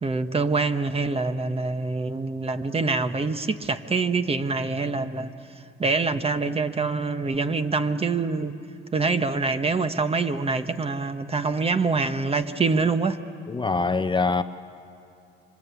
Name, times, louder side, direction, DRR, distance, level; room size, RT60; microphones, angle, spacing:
voice 1, 0.0-5.3 5.8-8.6 8.9-13.2, right 4 dB, 30° right, 9 dB, 1.2 m, -25 dB
voice 2, 13.5-14.4, left 4 dB, 25° left, 10 dB, 0.7 m, -23 dB
27.0 x 25.0 x 8.4 m, 2.7 s
cardioid pair, 90°, 20 cm